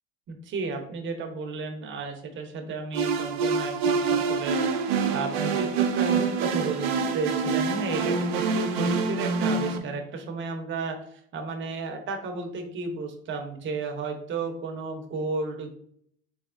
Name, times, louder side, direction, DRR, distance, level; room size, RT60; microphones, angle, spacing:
voice 1, 0.3-4.6 4.9-15.7, right 4 dB, 40° right, 5 dB, 0.9 m, -33 dB
sound 1, 2.9-9.8, right 5 dB, 85° right, 0.7 m, -26 dB
4.1 x 3.3 x 2.5 m, 0.63 s
supercardioid pair, 100°, 30 cm